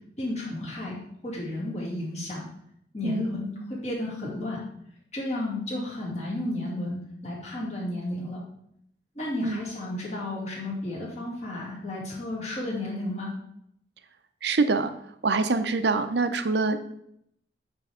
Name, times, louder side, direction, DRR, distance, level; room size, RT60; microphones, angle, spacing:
voice 1, 0.2-2.4 2.9-4.6 5.1-8.4 9.2-13.3, left 1 dB, 35° left, -4 dB, 2.3 m, -32 dB
voice 2, 14.4-14.9 15.2-16.8, right 3 dB, 65° right, 9 dB, 0.6 m, -25 dB
9.2 x 3.5 x 4.9 m, 0.73 s
head